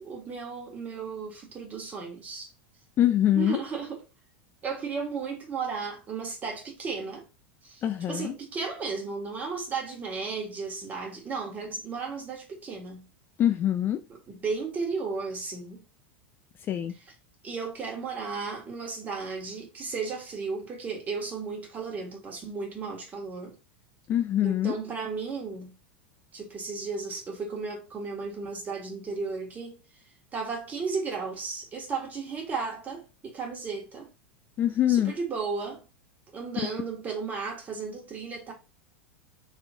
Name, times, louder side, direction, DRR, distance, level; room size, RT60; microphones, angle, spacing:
voice 1, 0.0-2.5 3.3-4.0 4.6-7.2 7.6-7.8 8.1-13.1 14.1-15.8 16.9-17.1 17.4-23.6 24.4-25.7 26.3-29.8 30.3-34.1 34.9-35.8 36.3-38.5, right 4 dB, 25° right, 1.5 m, -34 dB
voice 2, 3.0-3.6 7.8-8.3 13.4-14.0 16.7-16.9 24.1-24.7 34.6-35.1, left 11 dB, 35° left, 0.4 m, -24 dB
3.1 x 2.9 x 2.6 m
hypercardioid pair, 105°, 6 cm